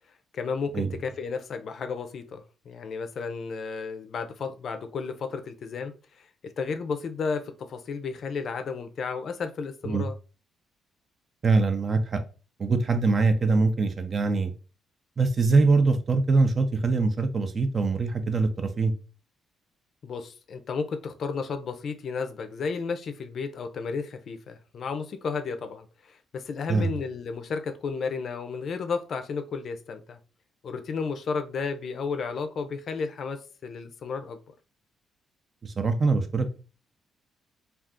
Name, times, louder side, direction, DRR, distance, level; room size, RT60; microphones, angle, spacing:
voice 1, 0.3-5.9 6.2-6.3 6.6-10.1 20.0-30.2 30.6-34.4, left 5 dB, 55° left, 7 dB, 0.4 m, -33 dB
voice 2, 11.4-12.2 12.6-14.5 15.2-18.9 26.7-27.0 35.6-36.6, right 3 dB, 40° right, 8 dB, 0.5 m, -23 dB
2.4 x 2.3 x 3.6 m, 0.35 s
cardioid pair, 90°, 0 cm